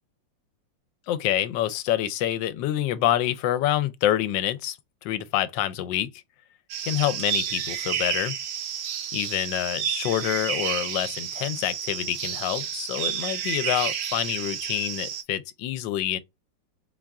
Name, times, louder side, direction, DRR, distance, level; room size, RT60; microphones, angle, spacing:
voice 1, 1.1-4.8 5.0-6.1 6.8-8.4 9.1-16.2, left 12 dB, 80° left, 1.2 m, -27 dB
sound 1, 6.7-15.2, right 8 dB, 65° right, 1.0 m, -31 dB
4.3 x 2.4 x 3.4 m
omnidirectional pair, 2.0 m